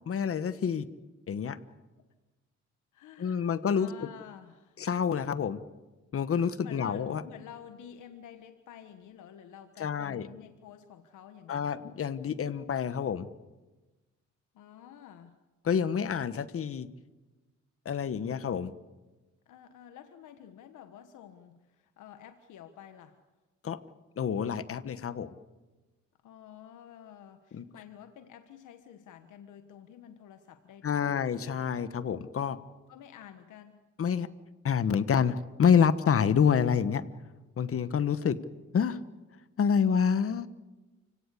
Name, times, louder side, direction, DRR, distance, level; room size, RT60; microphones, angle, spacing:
voice 1, 0.1-0.9 1.3-1.6 3.2-4.1 4.8-5.6 6.1-7.2 9.8-10.3 11.5-13.3 15.6-16.9 17.8-18.7 23.6-23.8 24.2-25.4 27.5-27.6 30.8-32.6 34.0-34.3 34.6-37.0 37.6-38.4 38.7-39.0 39.6-40.5, left 7 dB, 50° left, 14 dB, 1.3 m, -27 dB
voice 2, 2.9-4.8 6.6-11.9 14.5-15.4 19.4-23.2 26.2-31.2 32.9-33.8, left 9 dB, 80° left, 8 dB, 1.4 m, -50 dB
29.5 x 17.0 x 8.4 m, 1.2 s
cardioid pair, 90°, 30 cm